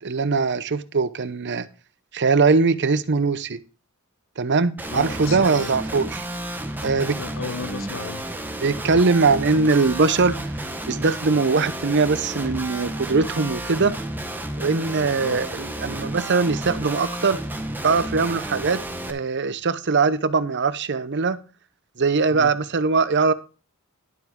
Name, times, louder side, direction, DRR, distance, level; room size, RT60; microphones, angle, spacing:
voice 1, 0.0-1.7 2.1-3.6 4.4-6.2 6.8-7.2 8.6-10.4 10.9-13.9 14.6-17.4 17.8-18.8 19.1-21.4 22.0-23.3, right 4 dB, 55° right, 0.8 m, -21 dB
Guitar, 4.8-19.1, right 1 dB, 10° right, 1.3 m, -32 dB
voice 2, 4.9-5.7 7.1-8.3 15.2-15.4 22.3-22.5, left 4 dB, 65° left, 0.8 m, -34 dB
11.5 x 7.5 x 3.7 m
head